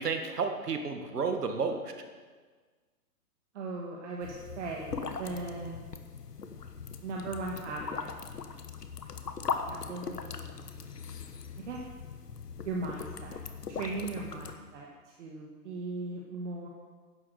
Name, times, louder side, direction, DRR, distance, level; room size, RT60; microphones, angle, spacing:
voice 1, 0.0-1.9, right 4 dB, 80° right, 6 dB, 2.0 m, -31 dB
voice 2, 3.5-5.8 7.0-8.1 9.7-10.9 11.6-11.8 12.6-13.4 13.7-16.7, right 3 dB, 50° right, -1 dB, 2.0 m, -38 dB
sound 1, 4.2-14.6, left 5 dB, 90° left, 1.4 m, -40 dB
11.0 x 10.5 x 6.6 m, 1.5 s
hypercardioid pair, 145°, 46 cm